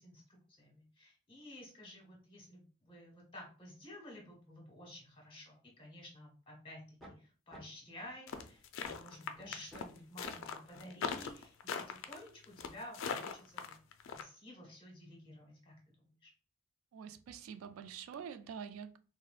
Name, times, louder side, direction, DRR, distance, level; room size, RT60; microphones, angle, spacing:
voice 1, 0.0-13.7 14.1-16.3, left 1 dB, 25° left, 1.2 m, -53 dB
sound 1, 7.0-7.1 7.5-7.6 8.0-9.0 9.3-9.4 9.7-9.9 10.2-10.3 10.7-10.8 11.1-11.3, right 1 dB, ahead, 0.7 m, -52 dB
sound 2, 8.3-14.2, left 6 dB, 65° left, 0.4 m, -40 dB
voice 2, 16.9-19.0, right 7 dB, 85° right, 0.3 m, -46 dB
4.1 x 2.0 x 2.3 m
head